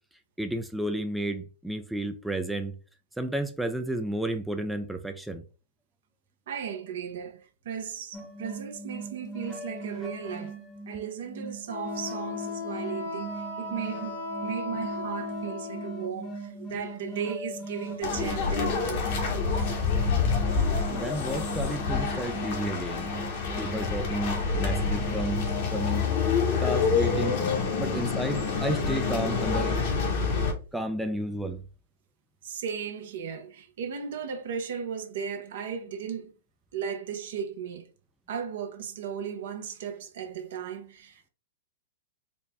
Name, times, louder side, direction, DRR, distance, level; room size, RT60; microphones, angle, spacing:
voice 1, 0.4-2.7 3.2-5.4 20.9-23.1 23.6-26.1 26.6-27.4 27.8-29.8 30.7-31.6, right 1 dB, 5° right, 0.4 m, -32 dB
voice 2, 6.5-10.6 10.9-19.3 28.0-28.1 32.4-36.3 36.7-37.9 38.3-41.3, right 7 dB, 60° right, 0.7 m, -36 dB
sound 1, 8.1-25.7, right 3 dB, 20° left, 0.8 m, -40 dB
Wind instrument woodwind instrument, 11.7-16.1, left 4 dB, 85° left, 2.1 m, -36 dB
sound 2, 18.0-30.5, left 5 dB, 55° left, 1.2 m, -27 dB
4.1 x 2.1 x 3.3 m
hypercardioid pair, 110°, 0 cm